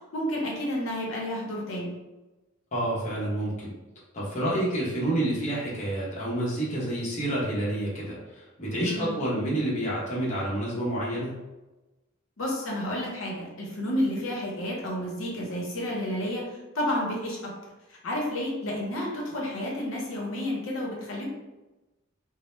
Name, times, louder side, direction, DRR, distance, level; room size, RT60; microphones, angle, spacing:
voice 1, 0.1-1.9 8.8-9.1 12.4-16.4 16.7-17.5 17.9-21.2, left 1 dB, 70° left, -2 dB, 0.7 m, -30 dB
voice 2, 2.7-3.7 4.1-11.3, right 1 dB, 35° left, -6 dB, 0.7 m, -29 dB
2.1 x 2.0 x 3.0 m, 1.1 s
head